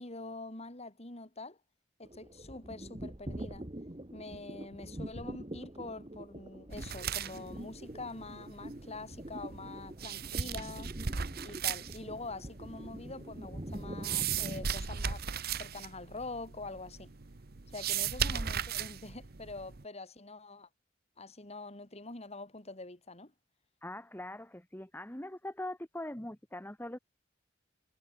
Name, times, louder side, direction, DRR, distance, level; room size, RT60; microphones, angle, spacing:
voice 1, 0.0-1.6 2.0-3.7 4.1-10.9 11.4-15.2 15.6-17.1 17.7-20.7 21.2-23.3, left 3 dB, 35° left, 3.3 m, -45 dB
sound 1, 2.0-14.7, right 1 dB, 30° right, 1.8 m, -44 dB
sound 2, 6.7-19.8, right 7 dB, 55° right, 1.0 m, -38 dB
voice 2, 23.8-27.0, left 1 dB, 10° left, 2.1 m, -42 dB
head